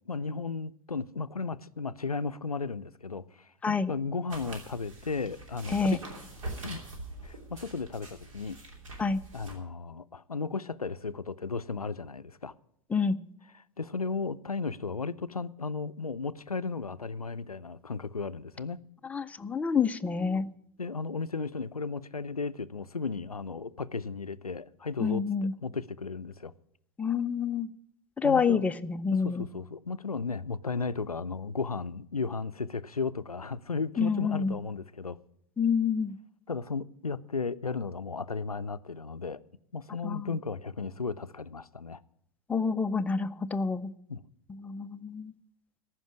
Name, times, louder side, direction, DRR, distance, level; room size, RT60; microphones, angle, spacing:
voice 1, 0.1-6.0 6.6-6.8 7.2-8.6 9.3-12.5 13.8-18.8 20.3-20.4 20.8-26.5 28.2-28.7 29.1-35.2 36.5-39.4 39.7-42.0 44.1-44.2, left 4 dB, 85° left, 0.5 m, -35 dB
sound 1, 4.3-9.5, right 2 dB, 60° right, 3.0 m, -43 dB
voice 2, 19.1-20.5 25.0-25.5 27.0-27.7 28.2-29.4 34.0-34.5 35.6-36.2 40.0-40.3 42.5-43.9 44.5-45.3, left 5 dB, 10° left, 0.4 m, -28 dB
14.0 x 5.8 x 9.8 m
figure-of-eight pair, 95°, 18 cm